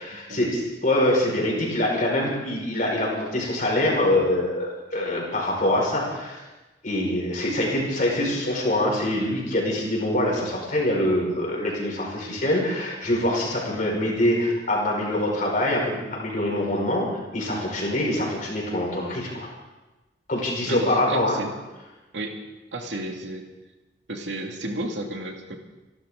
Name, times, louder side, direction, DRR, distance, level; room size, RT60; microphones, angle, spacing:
voice 1, 0.0-6.4 6.8-17.1 17.3-19.5 20.3-21.4, left 1 dB, 45° left, -2 dB, 5.1 m, -24 dB
voice 2, 20.7-21.5 22.1-22.4 22.7-23.5 24.1-25.6, right 1 dB, 85° right, 2 dB, 2.3 m, -32 dB
28.5 x 12.5 x 3.8 m, 1.1 s
head